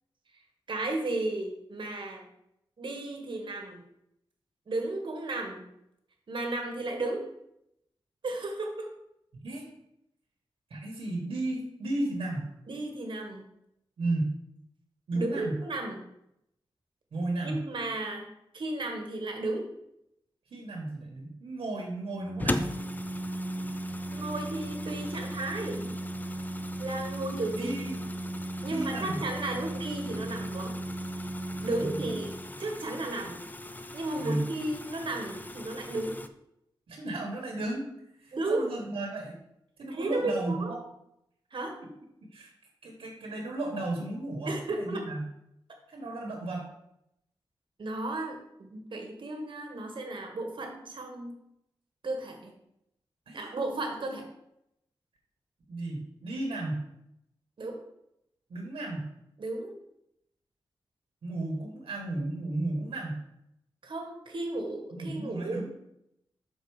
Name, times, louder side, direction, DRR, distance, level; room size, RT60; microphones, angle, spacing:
voice 1, 0.7-2.2 2.8-3.8 4.7-5.7 6.3-7.2 8.2-8.9 12.7-13.4 15.1-16.0 17.4-18.3 18.5-19.7 24.1-25.9 26.8-27.7 28.6-30.8 31.6-33.4 33.9-36.2 38.3-38.7 39.9-40.7 41.5-41.8 44.5-45.1 47.8-51.3 52.0-52.5 53.3-54.3 57.6-57.8 59.4-59.8 63.8-65.7, right 2 dB, 60° right, 3 dB, 1.4 m, -34 dB
voice 2, 10.7-12.4 14.0-14.3 15.1-15.6 17.1-17.6 20.5-22.7 27.5-28.0 28.7-29.2 31.8-32.0 34.2-34.5 36.9-37.9 38.2-39.4 39.8-40.8 42.3-42.5 42.8-45.2 45.9-46.7 53.3-53.5 55.7-56.8 58.5-59.1 61.2-63.2 64.9-65.7, right 2 dB, 90° right, 0 dB, 1.4 m, -34 dB
Organ, 22.1-32.9, right 1 dB, 45° right, 0.6 m, -37 dB
sound 1, 22.4-36.3, left 1 dB, 20° left, 0.5 m, -40 dB
6.3 x 4.7 x 4.8 m, 0.80 s
wide cardioid pair, 80°, 9 cm